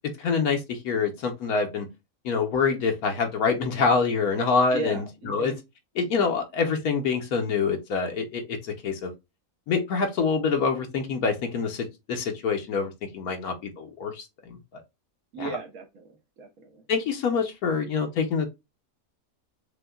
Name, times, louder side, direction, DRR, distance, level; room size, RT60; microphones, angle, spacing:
voice 1, 0.2-1.9 2.2-5.6 5.9-9.1 9.7-14.8 15.4-15.5 16.9-18.5, left 5 dB, 80° left, 1.4 m, -26 dB
voice 2, 4.7-5.6 15.3-16.8, right 3 dB, 75° right, 1.5 m, -36 dB
6.6 x 2.3 x 2.3 m
omnidirectional pair, 1.6 m